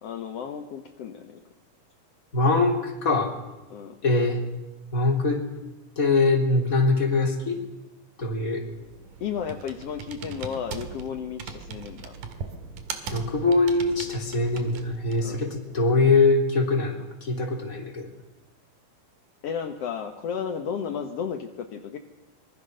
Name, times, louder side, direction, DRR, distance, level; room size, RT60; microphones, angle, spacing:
voice 1, 0.0-1.4 3.7-4.0 9.2-12.2 15.2-15.8 19.4-22.0, left 7 dB, 60° left, 5 dB, 1.7 m, -33 dB
voice 2, 2.3-3.3 4.0-4.4 4.9-5.4 6.0-7.6 8.2-8.6 13.1-18.1, left 3 dB, 25° left, 2 dB, 3.5 m, -23 dB
Computer keyboard, 8.4-15.4, right 5 dB, 65° right, 3.3 m, -40 dB
25.5 x 21.5 x 6.6 m, 1.1 s
omnidirectional pair, 4.3 m